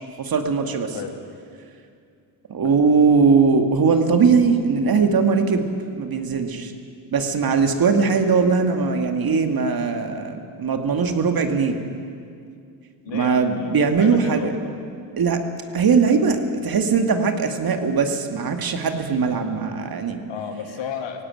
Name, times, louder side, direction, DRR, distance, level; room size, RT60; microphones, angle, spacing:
voice 1, 0.2-1.0 2.5-5.7 6.0-6.7 7.1-11.8 13.1-14.5 15.2-15.4 15.7-20.2, right 5 dB, 45° right, 5 dB, 2.3 m, -20 dB
voice 2, 13.0-14.6 20.3-21.2, left 7 dB, 65° left, 5 dB, 2.5 m, -33 dB
17.5 x 16.5 x 9.2 m, 2.4 s
supercardioid pair, 60°, 48 cm